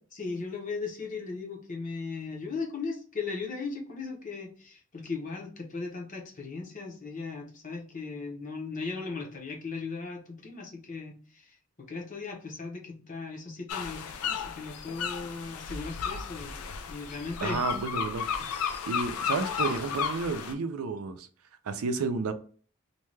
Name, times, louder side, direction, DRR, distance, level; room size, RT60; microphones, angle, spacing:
voice 1, 0.2-16.5 16.9-17.6 18.4-18.7, left 4 dB, 35° left, 0.7 m, -37 dB
sound 1, 13.7-20.5, left 7 dB, 90° left, 0.4 m, -33 dB
voice 2, 17.4-18.3 18.8-21.3 21.6-22.3, right 4 dB, 85° right, 0.4 m, -31 dB
2.6 x 2.2 x 3.1 m
head